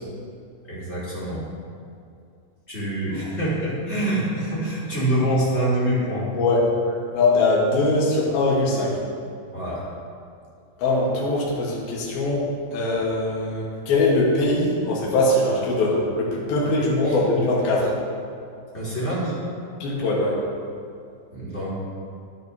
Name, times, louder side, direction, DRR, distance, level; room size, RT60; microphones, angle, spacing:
voice 1, 0.7-1.4 2.7-6.3 9.5-9.8 16.8-17.2 18.7-19.3 21.3-21.8, right 1 dB, 20° left, -9 dB, 2.1 m, -25 dB
voice 2, 6.3-6.7 7.1-9.0 10.8-12.4 12.7-17.9 19.8-20.4, left 2 dB, 70° left, -5 dB, 3.3 m, -21 dB
10.5 x 10.0 x 2.9 m, 2.4 s
omnidirectional pair, 4.6 m